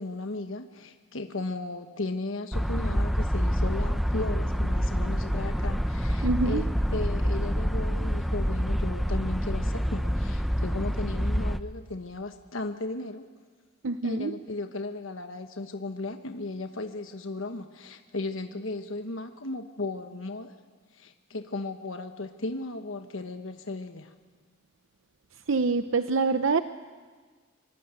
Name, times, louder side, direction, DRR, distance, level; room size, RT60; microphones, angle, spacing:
voice 1, 0.0-13.3 14.0-20.5 20.9-24.1, left 2 dB, 70° left, 6 dB, 1.3 m, -36 dB
sound 1, 2.5-11.6, equal, ahead, 0.7 m, -27 dB
voice 2, 6.2-6.7 13.8-14.4 25.5-26.6, right 4 dB, 70° right, 10 dB, 0.7 m, -25 dB
25.0 x 23.5 x 9.0 m, 1.5 s
head